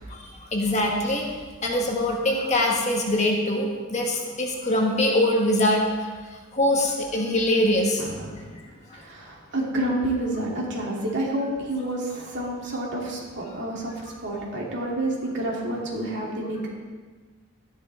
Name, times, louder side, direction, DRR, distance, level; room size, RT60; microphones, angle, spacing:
voice 1, 0.5-1.2 1.6-5.8 6.5-8.0, left 1 dB, 30° left, 0 dB, 1.5 m, -23 dB
voice 2, 8.0-8.5 8.9-13.9 14.2-16.7, right 1 dB, 55° right, -3 dB, 2.7 m, -29 dB
13.0 x 11.0 x 3.4 m, 1.4 s
head